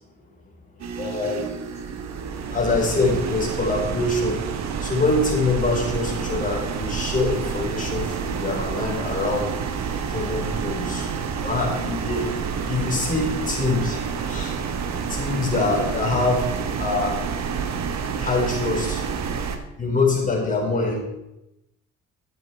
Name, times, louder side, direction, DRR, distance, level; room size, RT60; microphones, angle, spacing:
voice 1, 0.8-2.0 2.4-9.5 10.1-12.3 12.6-14.6 15.1-17.2 18.2-19.2 19.8-21.1, left 3 dB, 25° left, -2 dB, 4.2 m, -25 dB
sound 1, 0.8-19.6, right 6 dB, 60° right, 1.3 m, -29 dB
12.0 x 8.2 x 4.5 m, 0.91 s
cardioid pair, 90°, 30 cm